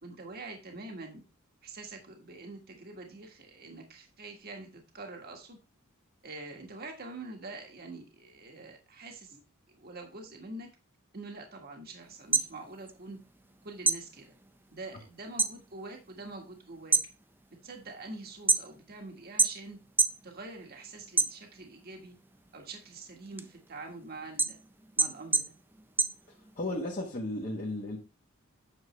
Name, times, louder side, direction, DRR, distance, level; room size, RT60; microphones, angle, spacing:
voice 1, 0.0-1.2 1.6-5.6 6.2-9.4 9.8-10.7 11.1-13.2 13.6-14.3 14.7-17.1 17.6-19.8 20.2-22.2 22.5-24.6 25.0-25.6, right 3 dB, 45° right, 3 dB, 1.6 m, -45 dB
sound 1, 12.1-13.5 13.8-15.6 15.9-16.4 16.8-19.0 19.4-20.2 20.6-21.8 22.3-26.8, right 4 dB, 10° right, 0.4 m, -28 dB
voice 2, 26.3-28.0, left 1 dB, 40° left, -2 dB, 1.3 m, -35 dB
8.9 x 6.5 x 3.2 m, 0.29 s
head